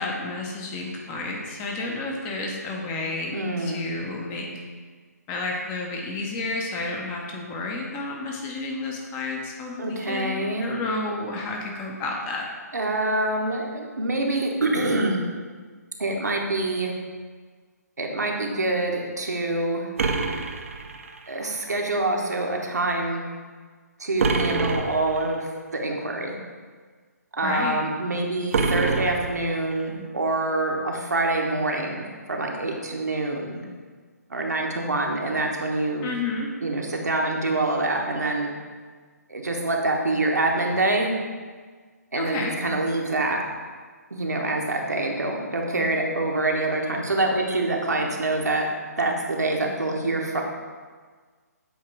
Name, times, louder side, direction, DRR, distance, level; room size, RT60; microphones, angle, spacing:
voice 1, 0.0-4.5 5.3-12.5 27.4-27.8 36.0-36.5 42.2-42.5, left 3 dB, 20° left, 0 dB, 0.7 m, -31 dB
voice 2, 3.3-3.8 9.8-10.7 12.7-15.2 16.0-16.9 18.0-19.9 21.3-23.2 24.0-26.3 27.4-33.7 34.3-36.1 36.6-38.5 39.3-41.1 42.1-43.4 44.1-48.7 49.0-50.4, right 2 dB, 75° right, 0 dB, 1.1 m, -26 dB
sound 1, 20.0-21.4 24.2-25.3 28.5-29.8, right 4 dB, 50° right, 0.6 m, -26 dB
8.0 x 2.8 x 4.7 m, 1.5 s
figure-of-eight pair, 135°, 9 cm